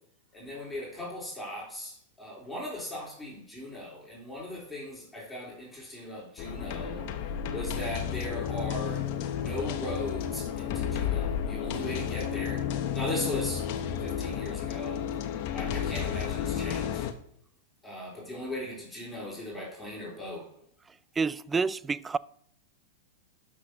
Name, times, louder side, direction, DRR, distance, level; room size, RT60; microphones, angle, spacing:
voice 1, 0.3-7.1 7.5-9.0 9.3-12.6 12.9-13.6 14.0-15.0 15.5-17.1 17.8-20.5, left 1 dB, 10° left, 3.8 m, -38 dB
sound 1, 6.4-17.1, left 8 dB, 50° left, 0.9 m, -32 dB
voice 2, 21.2-22.2, right 4 dB, 15° right, 0.3 m, -28 dB
12.5 x 6.3 x 2.8 m
figure-of-eight pair, 100°, 0 cm